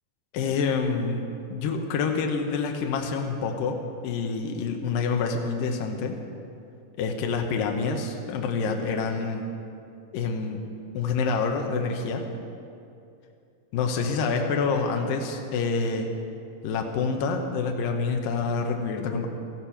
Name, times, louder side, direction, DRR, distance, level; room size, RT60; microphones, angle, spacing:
voice 1, 0.3-1.2 1.5-6.1 7.0-9.5 10.1-10.6 10.9-12.2 13.7-16.1 16.6-19.3, left 4 dB, 75° left, 3 dB, 2.7 m, -27 dB
14.5 x 14.0 x 5.8 m, 2.5 s
omnidirectional pair, 4.1 m